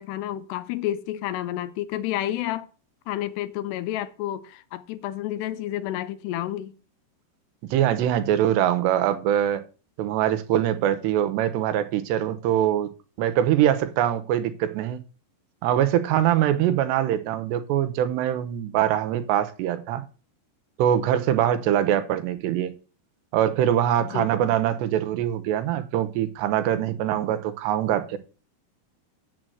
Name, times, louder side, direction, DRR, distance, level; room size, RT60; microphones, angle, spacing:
voice 1, 0.0-2.7 3.1-6.7 24.0-24.3, left 13 dB, 85° left, 2.8 m, -30 dB
voice 2, 7.7-9.6 10.0-12.9 13.2-15.0 15.6-20.0 20.8-22.7 23.3-28.2, right 11 dB, 85° right, 3.1 m, -23 dB
7.6 x 7.3 x 7.8 m
omnidirectional pair, 4.9 m